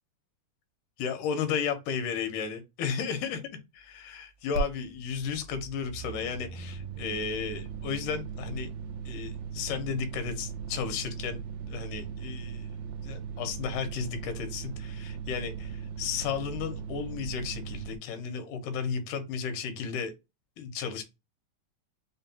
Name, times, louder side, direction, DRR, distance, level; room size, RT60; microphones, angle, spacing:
voice 1, 1.0-3.4 3.7-8.7 9.1-11.4 11.7-12.7 13.0-20.1 20.6-21.0, left 6 dB, 75° left, 2.1 m, -34 dB
sound 1, 4.5-4.7 4.9-18.0, right 6 dB, 85° right, 1.6 m, -38 dB
5.4 x 2.2 x 2.7 m
omnidirectional pair, 3.9 m